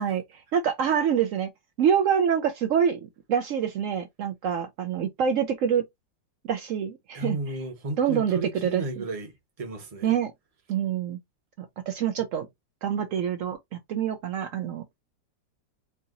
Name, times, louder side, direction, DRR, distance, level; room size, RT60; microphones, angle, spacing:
voice 1, 0.0-1.5 1.8-3.0 3.3-5.8 6.5-7.4 8.0-9.0 10.0-10.3 10.7-11.2 11.6-12.5 12.8-15.0, right 8 dB, 85° right, 0.7 m, -26 dB
voice 2, 7.1-9.3 9.6-10.1, right 2 dB, 30° right, 0.8 m, -33 dB
4.8 x 2.7 x 2.5 m
omnidirectional pair, 2.0 m